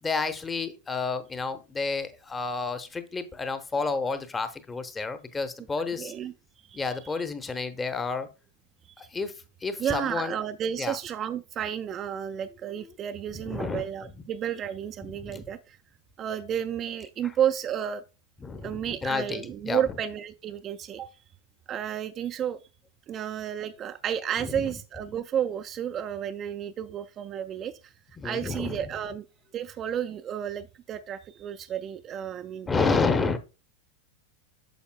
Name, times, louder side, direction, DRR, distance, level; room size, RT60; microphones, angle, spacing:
voice 1, 0.0-6.1 6.7-8.3 9.0-10.4 10.8-11.0 12.8-12.9 13.4-13.9 15.1-15.4 18.4-19.8 24.4-24.6 28.2-28.8 32.7-33.4, left 4 dB, 15° left, 0.7 m, -30 dB
voice 2, 6.0-6.3 6.7-7.2 9.0-9.1 9.8-15.8 16.2-18.0 18.6-21.1 21.7-22.6 23.1-27.9 28.2-29.2 29.5-32.7, right 9 dB, 30° right, 0.4 m, -32 dB
9.1 x 6.9 x 2.2 m
figure-of-eight pair, 90°, 0 cm